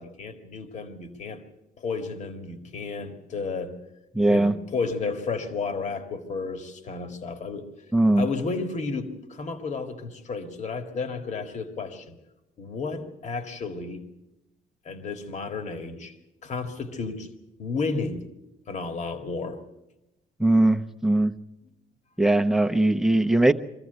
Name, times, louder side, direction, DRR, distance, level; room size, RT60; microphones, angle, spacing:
voice 1, 0.0-1.4 1.8-3.8 4.3-7.7 8.2-12.2 12.6-14.0 14.9-16.2 16.4-17.3 17.6-18.2 18.7-19.6, left 4 dB, 45° left, 7 dB, 2.0 m, -32 dB
voice 2, 4.1-4.5 7.9-8.3 20.4-21.3 22.2-23.5, right 1 dB, ahead, 7 dB, 0.9 m, -20 dB
24.0 x 14.5 x 8.1 m, 0.95 s
cardioid pair, 110°, 17 cm